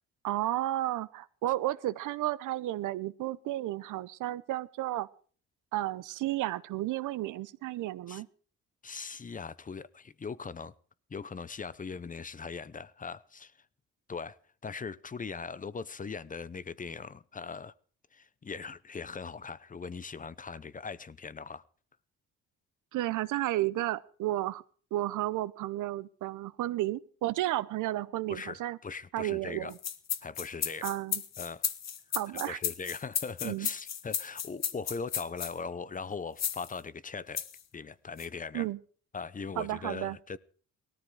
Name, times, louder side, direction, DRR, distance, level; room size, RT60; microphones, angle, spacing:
voice 1, 0.2-5.1 5.7-8.3 22.9-24.6 24.9-28.8 29.1-29.8 30.8-31.2 32.1-32.6 33.4-33.7 38.5-38.8 39.6-40.2, right 15 dB, 85° right, 0.8 m, -32 dB
voice 2, 8.8-10.7 11.1-13.5 14.1-14.4 14.6-17.7 18.1-21.6 28.3-29.7 30.2-30.9 31.4-31.6 32.5-37.4 37.7-38.7 39.1-40.4, left 5 dB, 25° left, 0.7 m, -40 dB
sound 1, 29.7-35.5 36.4-36.7 37.4-37.6 38.2-38.3, left 9 dB, 60° left, 1.6 m, -34 dB
18.5 x 13.5 x 4.8 m
cardioid pair, 90°, 30 cm